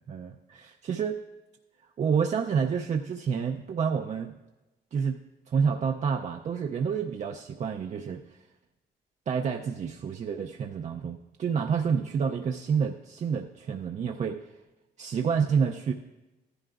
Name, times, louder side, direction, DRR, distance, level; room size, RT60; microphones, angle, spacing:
voice 1, 0.1-1.2 2.0-4.4 4.9-5.2 5.5-8.4 9.3-14.5 15.0-15.9, right 6 dB, 45° right, 3 dB, 0.4 m, -29 dB
14.5 x 11.0 x 2.4 m, 1.1 s
cardioid pair, 105°, 17 cm